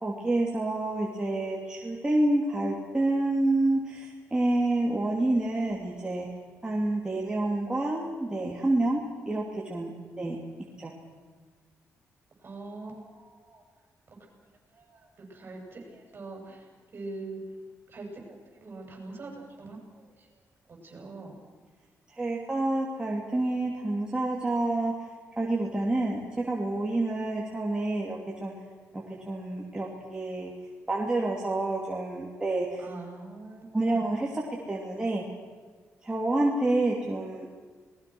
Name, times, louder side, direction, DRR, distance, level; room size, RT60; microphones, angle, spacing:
voice 1, 0.0-6.3 6.6-9.0 9.3-10.4 10.8-10.9 22.1-24.9 25.4-28.5 29.3-30.5 30.9-32.8 33.7-35.2 36.0-37.5, right 2 dB, 15° right, -3 dB, 3.0 m, -28 dB
voice 2, 12.4-13.6 14.7-15.0 15.3-16.6 16.9-17.4 17.9-20.3 20.7-21.3 32.8-34.0, right 3 dB, 40° right, 2 dB, 7.3 m, -43 dB
29.0 x 20.0 x 6.3 m, 1.5 s
cardioid pair, 120°, 5 cm